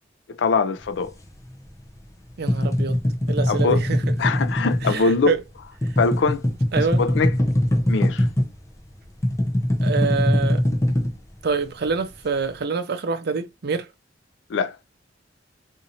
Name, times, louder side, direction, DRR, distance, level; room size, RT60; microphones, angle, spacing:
voice 1, 0.3-1.1 3.5-3.8 4.2-5.4 6.0-6.4 7.0-7.3 7.9-8.3 14.5-14.8, left 4 dB, 70° left, 0.4 m, -22 dB
sound 1, 0.8-2.0 2.3-8.6 8.9-12.0, left 1 dB, 15° left, 0.7 m, -22 dB
voice 2, 2.4-3.0 3.3-4.0 4.8-5.4 6.7-7.0 9.8-10.6 11.4-13.9, right 4 dB, 60° right, 0.5 m, -26 dB
4.1 x 2.6 x 2.7 m
head